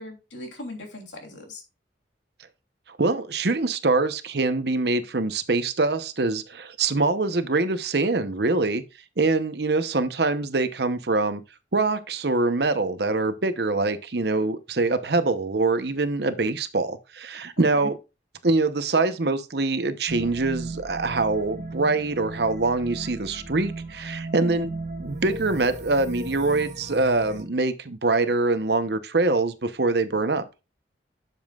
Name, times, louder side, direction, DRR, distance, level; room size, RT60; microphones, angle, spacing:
voice 1, 0.0-1.6 17.7-17.9 24.4-24.7, left 2 dB, 85° left, 3.2 m, -38 dB
voice 2, 3.0-8.8 9.2-11.4 11.7-17.9 18.4-24.7 25.0-30.5, right 3 dB, 65° right, 0.9 m, -24 dB
sound 1, 20.1-27.4, right 2 dB, 40° right, 1.3 m, -36 dB
10.5 x 7.2 x 2.4 m
head